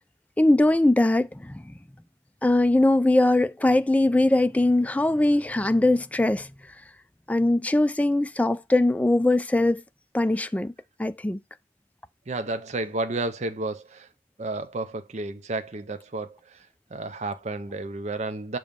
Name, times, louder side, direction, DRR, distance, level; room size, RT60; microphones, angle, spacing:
voice 1, 0.4-1.7 2.4-6.5 7.3-9.8 10.1-10.7 11.0-11.4, left 2 dB, 10° left, 0.3 m, -21 dB
voice 2, 12.3-14.1 14.4-16.6 16.9-18.6, right 2 dB, 40° right, 0.6 m, -31 dB
6.9 x 3.1 x 5.2 m
head